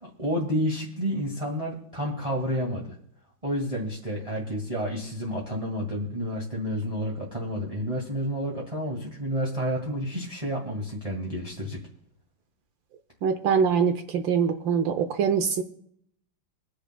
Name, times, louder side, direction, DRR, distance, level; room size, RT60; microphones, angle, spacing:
voice 1, 0.0-3.0 3.4-11.8, equal, 15° right, -2 dB, 1.8 m, -30 dB
voice 2, 13.2-15.6, right 6 dB, 70° right, 9 dB, 1.4 m, -23 dB
26.5 x 10.0 x 2.2 m, 0.69 s
omnidirectional pair, 2.4 m